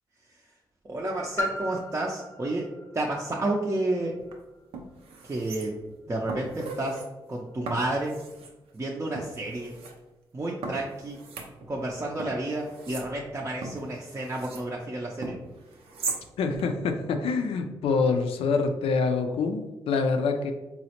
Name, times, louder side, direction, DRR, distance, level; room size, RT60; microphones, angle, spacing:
voice 1, 0.8-2.7 2.9-4.2 5.2-5.8 6.1-7.0 7.3-8.2 8.7-9.8 10.3-11.2 11.7-15.4, right 2 dB, 25° right, -2 dB, 0.5 m, -30 dB
Piano, 1.4-6.8 7.5-7.6, left 1 dB, 30° left, 0.5 m, -39 dB
sound 1, 4.2-4.3 4.7-6.0 6.3-7.1 7.7-8.5 9.2-9.9 10.6-11.9 12.2-14.7 15.2-16.2 16.6-16.7, right 3 dB, 85° right, 0.5 m, -39 dB
voice 2, 16.4-20.5, left 4 dB, 80° left, 6 dB, 0.4 m, -26 dB
3.8 x 2.0 x 2.8 m, 1.1 s
cardioid pair, 60°, 10 cm